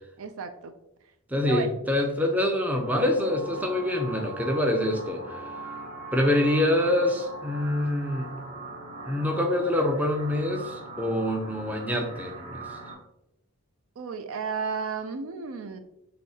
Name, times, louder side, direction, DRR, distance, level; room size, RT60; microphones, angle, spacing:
voice 1, 0.2-0.7 1.4-1.7 14.0-15.8, right 5 dB, 65° right, 9 dB, 0.4 m, -33 dB
voice 2, 1.3-5.4 6.1-8.4 9.1-12.6, left 1 dB, 5° right, 2 dB, 0.5 m, -25 dB
sound 1, 2.8-12.9, right 2 dB, 30° right, 0.8 m, -40 dB
6.6 x 2.7 x 2.7 m, 0.85 s
head